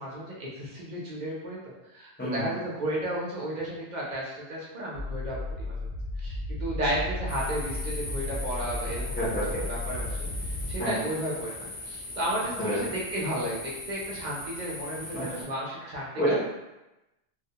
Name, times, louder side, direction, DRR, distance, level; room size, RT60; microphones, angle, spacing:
voice 1, 0.0-5.9 6.2-9.2 9.4-10.3 10.7-16.1, right 1 dB, 55° right, -5 dB, 0.6 m, -33 dB
voice 2, 2.2-2.5 8.9-9.6 10.8-11.0 12.6-12.8 15.1-15.2 16.2-16.3, equal, 15° left, -9 dB, 0.5 m, -29 dB
sound 1, 4.9-10.8, left 2 dB, 85° left, 0.8 m, -34 dB
sound 2, 7.3-15.4, left 2 dB, 55° left, 0.8 m, -40 dB
2.3 x 2.1 x 2.7 m, 0.98 s
omnidirectional pair, 1.1 m